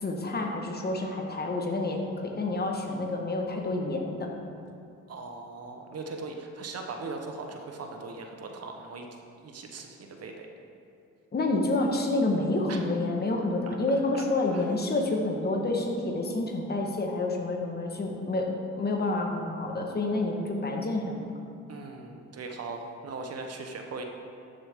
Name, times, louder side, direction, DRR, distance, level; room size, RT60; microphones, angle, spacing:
voice 1, 0.0-4.3 11.3-18.5 18.7-21.3, left 2 dB, 35° left, 1 dB, 1.4 m, -28 dB
voice 2, 5.1-9.1 9.4-10.5 12.7-12.8 13.7-14.0 14.5-14.7 21.7-24.0, right 3 dB, 55° right, 3 dB, 1.1 m, -39 dB
13.0 x 6.7 x 3.6 m, 2.5 s
cardioid pair, 90°, 30 cm